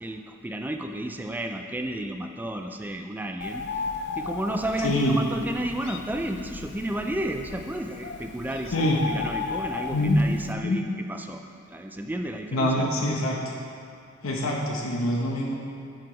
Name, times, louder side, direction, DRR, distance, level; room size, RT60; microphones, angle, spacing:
voice 1, 0.0-3.7 4.1-11.4 11.7-12.8, right 1 dB, 10° right, 4 dB, 0.4 m, -32 dB
Bird, 3.4-10.5, left 5 dB, 60° left, 0.4 m, -36 dB
voice 2, 4.8-5.2 8.7-9.0 9.9-10.2 10.6-10.8 12.5-13.4 14.2-15.5, left 1 dB, 85° left, -2 dB, 0.9 m, -25 dB
7.4 x 4.8 x 5.0 m, 2.5 s
head